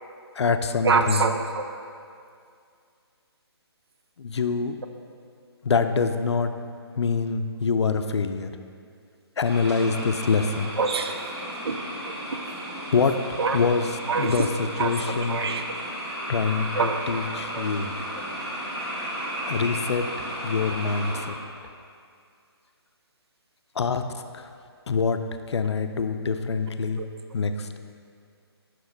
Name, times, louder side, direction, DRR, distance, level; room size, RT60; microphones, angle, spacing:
voice 1, 0.3-1.3 4.2-4.8 5.6-6.5 7.0-8.5 9.4-10.7 12.9-13.2 13.5-15.4 16.3-17.9 19.4-20.1 20.4-21.4 23.8-24.5 24.9-27.0 27.3-27.8, left 5 dB, 85° left, 8 dB, 0.4 m, -25 dB
voice 2, 0.8-1.6 10.8-11.1 11.7-11.8 13.4-13.6 14.1-14.3 14.8-15.6 16.8-17.0 17.6-17.7 27.0-27.1, right 5 dB, 70° right, 7 dB, 0.5 m, -25 dB
sound 1, 9.4-21.2, equal, 10° right, 0.7 m, -34 dB
6.1 x 4.9 x 3.9 m, 2.3 s
hypercardioid pair, 165°, 14 cm